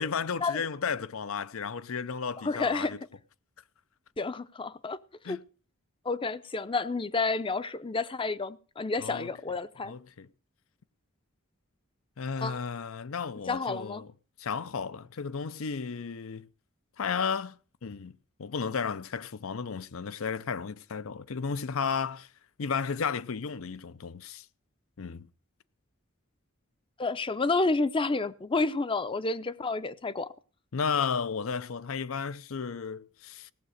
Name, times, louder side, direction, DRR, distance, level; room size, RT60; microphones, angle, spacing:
voice 1, 0.0-3.0 5.2-5.4 9.0-9.3 9.8-10.3 12.2-14.1 14.4-16.5 17.0-17.6 17.8-18.1 18.4-22.3 22.6-24.4 25.0-25.3 30.7-33.5, left 6 dB, 75° left, 0.6 m, -33 dB
voice 2, 2.4-3.0 4.2-5.0 5.3-5.4 6.0-9.9 12.4-12.6 13.5-14.0 27.0-30.3, left 3 dB, 25° left, 0.5 m, -30 dB
17.0 x 7.4 x 6.4 m
head